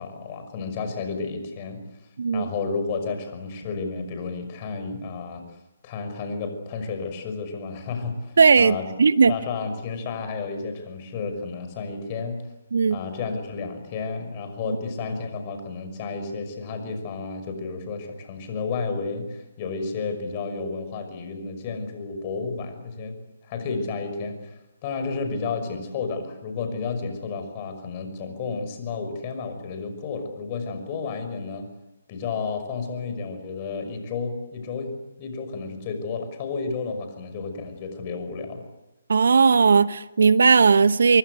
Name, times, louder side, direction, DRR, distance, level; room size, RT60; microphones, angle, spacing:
voice 1, 0.0-1.8 2.3-5.4 5.8-8.9 9.3-12.4 12.9-23.2 23.4-31.7 32.1-34.9 35.2-38.7, left 4 dB, 30° left, 8 dB, 5.8 m, -32 dB
voice 2, 2.2-2.5 8.4-9.3 12.7-13.0 39.1-41.2, right 5 dB, 65° right, 16 dB, 0.9 m, -17 dB
25.5 x 23.5 x 8.1 m, 0.99 s
figure-of-eight pair, 140°, 0 cm